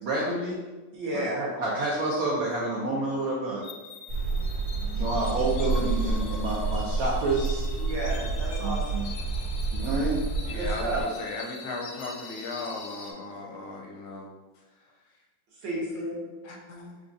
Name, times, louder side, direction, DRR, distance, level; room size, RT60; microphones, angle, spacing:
voice 1, 0.0-0.6 1.1-3.6 4.9-7.6 8.6-9.1 9.7-10.2, right 2 dB, 80° right, -5 dB, 0.8 m, -29 dB
voice 2, 0.9-1.5 7.8-9.0 10.5-11.0 15.6-16.3, right 1 dB, 65° right, -5 dB, 1.5 m, -32 dB
sound 1, 3.6-13.1, left 4 dB, 70° left, 0.9 m, -43 dB
sound 2, 4.1-11.0, right 3 dB, 40° right, 1.6 m, -29 dB
voice 3, 10.5-14.9 16.4-17.0, left 3 dB, 85° left, 1 dB, 1.4 m, -38 dB
4.8 x 2.3 x 2.6 m, 1.2 s
omnidirectional pair, 2.3 m